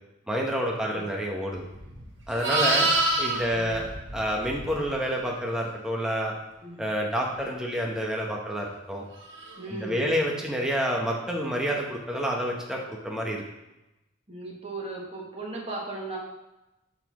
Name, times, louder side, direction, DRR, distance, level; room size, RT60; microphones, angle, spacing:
voice 1, 0.3-1.6 2.3-2.9 3.2-3.8 4.1-6.3 6.8-9.0 9.7-13.4, equal, 5° right, -1 dB, 0.9 m, -28 dB
Livestock farm animals working animals, 1.7-5.0 9.3-9.6, right 2 dB, 75° right, 1.5 m, -27 dB
voice 2, 2.5-2.8 3.5-3.8 6.6-6.8 9.6-10.3 14.3-16.2, right 2 dB, 30° right, -3 dB, 1.5 m, -37 dB
11.5 x 4.2 x 3.0 m, 0.96 s
head